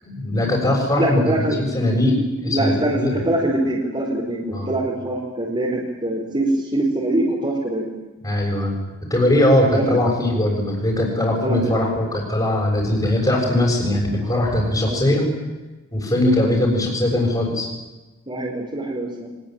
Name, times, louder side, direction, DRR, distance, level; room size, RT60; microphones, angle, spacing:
voice 1, 0.0-3.2 4.5-4.7 8.2-8.8 9.1-15.3 15.9-17.7, left 1 dB, 20° left, -3 dB, 6.9 m, -20 dB
voice 2, 1.0-1.7 2.5-7.9 9.7-10.2 11.4-12.0 14.8-15.0 18.3-19.3, right 1 dB, 25° right, -3 dB, 4.6 m, -23 dB
24.0 x 21.5 x 9.1 m, 1.2 s
head